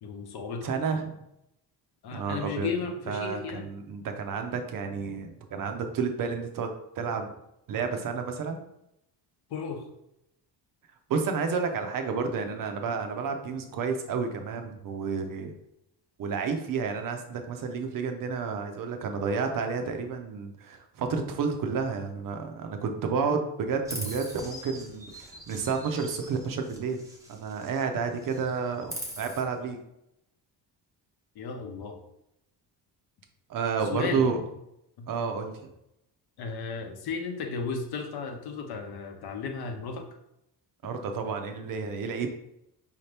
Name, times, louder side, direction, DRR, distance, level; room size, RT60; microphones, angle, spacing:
voice 1, 0.0-0.7 2.0-3.7 9.5-9.9 31.4-32.0 33.9-34.4 35.0-35.1 36.4-40.1, left 5 dB, 60° left, 4 dB, 0.7 m, -34 dB
voice 2, 0.6-1.1 2.1-2.7 3.1-6.7 7.0-7.3 7.7-8.6 11.1-15.5 16.2-29.8 33.5-34.4 35.1-35.5 40.8-42.3, right 5 dB, 50° right, 5 dB, 0.6 m, -30 dB
Chirp tweet, 23.8-27.9 28.2-29.4, right 1 dB, 10° right, 0.5 m, -42 dB
5.0 x 2.8 x 3.3 m, 0.82 s
cardioid pair, 175°, 42 cm